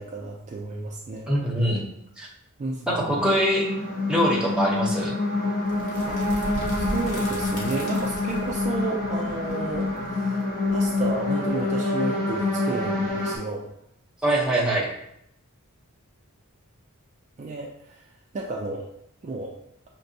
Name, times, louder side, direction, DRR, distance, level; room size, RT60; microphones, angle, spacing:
voice 1, 0.0-1.3 2.6-3.2 6.1-10.4 10.7-13.7 17.4-18.1 18.3-18.9 19.2-19.6, right 3 dB, 30° right, -1 dB, 0.3 m, -32 dB
voice 2, 1.3-1.8 2.2-2.3 2.9-3.7 4.1-5.1 14.2-14.9, equal, 5° right, -4 dB, 0.7 m, -23 dB
sound 1, 3.2-13.4, left 2 dB, 40° left, 0.6 m, -27 dB
sound 2, 5.7-11.5, equal, 90° left, 0.9 m, -37 dB
5.9 x 2.2 x 2.7 m, 0.77 s
head